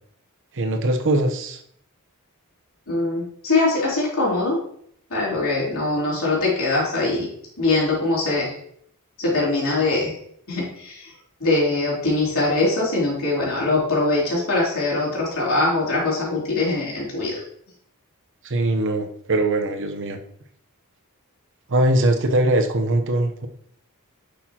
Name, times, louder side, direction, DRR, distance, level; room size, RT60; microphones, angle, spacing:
voice 1, 0.5-1.6 18.4-20.2 21.7-23.5, right 1 dB, 60° right, 6 dB, 0.9 m, -21 dB
voice 2, 2.9-4.6 5.1-7.3 7.6-8.5 9.2-10.2 10.5-11.1 11.4-17.4, left 2 dB, 65° left, -5 dB, 3.6 m, -22 dB
10.0 x 6.5 x 2.9 m, 0.67 s
head